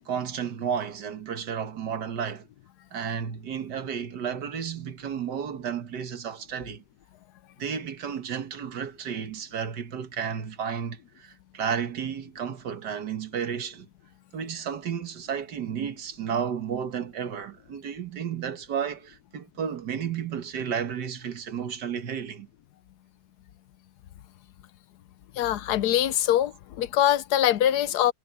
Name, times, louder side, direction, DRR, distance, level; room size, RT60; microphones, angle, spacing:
voice 1, 0.0-2.5 2.9-6.8 7.6-13.9 14.3-22.5, right 7 dB, 70° right, 2.0 m, -32 dB
voice 2, 25.3-28.1, left 11 dB, 70° left, 1.2 m, -23 dB
omnidirectional pair, 1.9 m